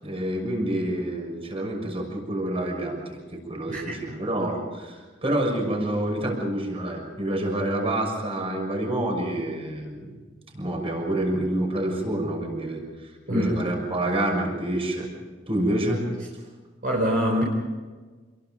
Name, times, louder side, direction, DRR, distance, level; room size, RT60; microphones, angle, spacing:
voice 1, 0.0-10.2 10.5-12.8 13.3-15.1 15.5-16.0, right 1 dB, 30° right, 2 dB, 6.4 m, -27 dB
voice 2, 13.3-13.6 16.8-17.4, equal, 45° right, -2 dB, 4.3 m, -24 dB
28.0 x 23.0 x 5.3 m, 1.4 s
head